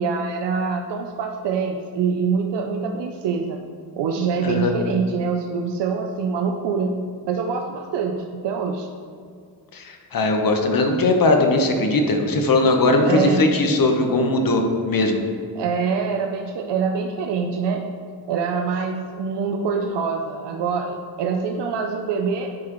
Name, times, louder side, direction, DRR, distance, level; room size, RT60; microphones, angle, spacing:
voice 1, 0.0-3.6 4.0-8.9 13.0-13.6 15.5-17.9 18.3-22.5, right 5 dB, 90° right, 3 dB, 0.6 m, -25 dB
voice 2, 9.7-15.2, left 2 dB, 55° left, 3 dB, 1.1 m, -19 dB
10.5 x 4.8 x 3.0 m, 2.2 s
cardioid pair, 65°, 41 cm